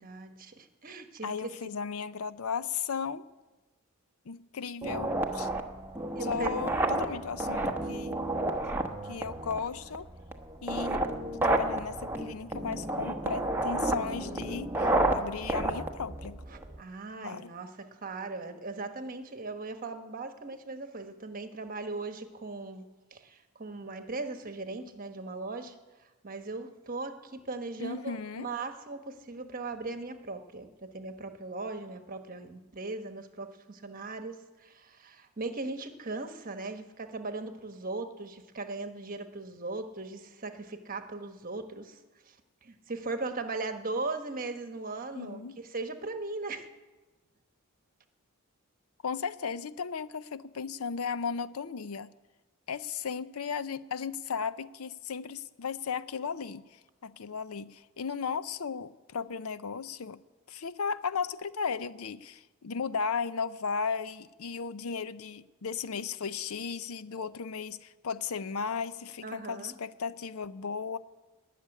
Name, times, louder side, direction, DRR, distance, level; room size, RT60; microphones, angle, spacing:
voice 1, 0.0-1.5 6.1-6.6 16.5-25.8 26.2-42.0 42.3-42.4 42.6-46.7 69.2-69.7, right 3 dB, 40° right, 7 dB, 1.2 m, -38 dB
voice 2, 1.2-3.2 4.3-5.5 6.2-8.2 9.0-10.1 10.6-11.0 11.3-16.4 17.2-17.5 27.8-28.5 45.1-45.6 49.0-52.1 52.7-60.2 60.5-71.0, left 6 dB, 75° left, 15 dB, 0.6 m, -35 dB
sound 1, 4.8-16.8, right 2 dB, 10° right, 1.0 m, -31 dB
19.0 x 6.8 x 9.9 m, 1.2 s
head